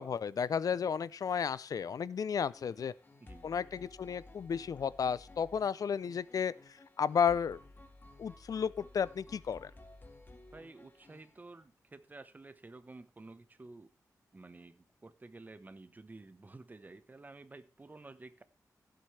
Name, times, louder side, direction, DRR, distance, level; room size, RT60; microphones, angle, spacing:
voice 1, 0.0-2.9 3.4-7.6 8.2-9.7, left 7 dB, 70° left, 0.5 m, -33 dB
sound 1, 2.4-11.6, left 2 dB, 30° left, 1.8 m, -56 dB
voice 2, 3.2-3.5 10.5-13.9 14.3-18.4, right 3 dB, 25° right, 1.0 m, -52 dB
16.0 x 7.8 x 3.3 m
wide cardioid pair, 90°, 6 cm